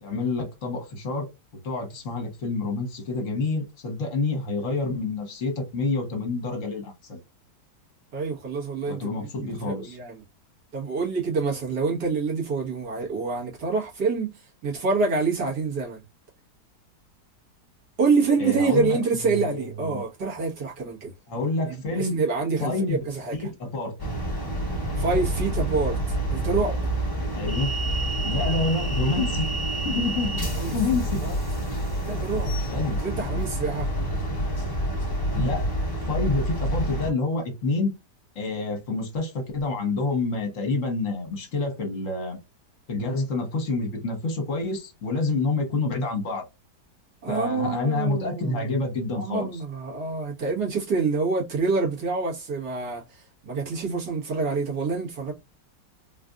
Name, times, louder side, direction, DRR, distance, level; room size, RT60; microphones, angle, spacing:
voice 1, 0.0-1.3 1.6-7.2 8.9-10.0 18.4-20.0 21.3-22.2 22.6-23.0 23.3-23.9 27.3-27.7 28.2-29.5 29.8-30.4 30.7-31.2 32.7-33.0 35.3-35.7 36.1-37.9 38.3-42.4 42.9-46.5 47.3-49.5, left 3 dB, 50° left, 1.3 m, -28 dB
voice 2, 8.1-10.2 10.7-16.0 18.0-21.1 21.6-23.5 25.0-26.8 30.5-30.7 31.2-31.4 32.0-32.5 33.0-33.9 47.2-48.7 49.1-55.3, right 4 dB, 65° right, 1.9 m, -27 dB
Trainstation starting train, 24.0-37.1, right 1 dB, 25° left, 0.5 m, -27 dB
3.9 x 2.5 x 2.3 m
omnidirectional pair, 1.9 m